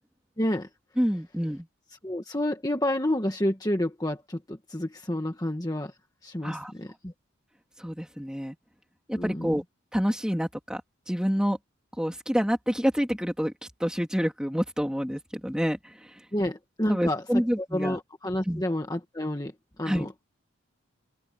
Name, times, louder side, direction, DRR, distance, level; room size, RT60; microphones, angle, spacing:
voice 1, 0.4-0.7 2.0-7.1 9.1-9.6 16.3-17.2 17.6-19.5 19.8-20.2, left 1 dB, 20° left, 1.5 m, -29 dB
voice 2, 1.0-1.7 6.4-6.7 7.8-8.5 9.1-9.6 9.9-10.8 11.1-11.6 12.0-13.5 13.8-16.2 16.9-18.0 18.5-18.6 19.8-20.1, equal, 5° right, 2.9 m, -27 dB
open air
head